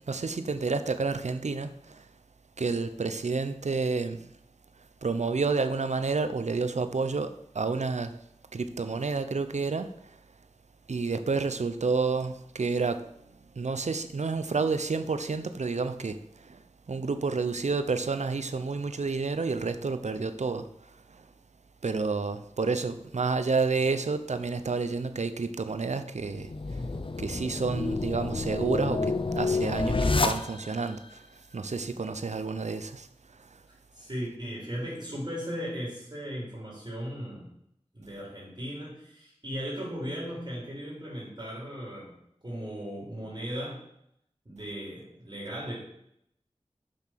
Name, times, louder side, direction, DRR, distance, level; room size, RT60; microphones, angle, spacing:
voice 1, 0.1-2.1 2.6-4.3 5.0-8.2 8.5-10.2 10.9-13.1 13.5-16.6 16.9-21.3 21.8-26.8 27.2-33.1 33.4-33.6, right 4 dB, 85° right, 0.7 m, -30 dB
sound 1, 26.3-30.9, left 3 dB, 50° left, 0.6 m, -29 dB
voice 2, 33.9-37.5 37.9-42.1 42.4-43.8 44.5-45.8, equal, 40° right, 3.7 m, -37 dB
7.2 x 6.9 x 5.8 m
wide cardioid pair, 60°, 12 cm